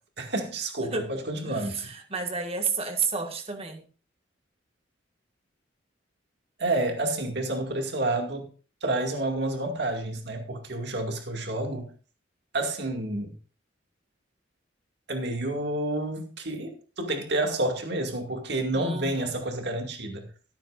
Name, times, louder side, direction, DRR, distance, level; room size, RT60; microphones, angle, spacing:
voice 1, 0.2-1.8 6.6-8.5 8.8-11.9 12.5-13.3 15.1-20.3, right 2 dB, 60° right, 2.2 m, -29 dB
voice 2, 0.8-3.8 18.7-19.3, right 5 dB, 30° right, 1.8 m, -32 dB
13.5 x 13.0 x 2.6 m
head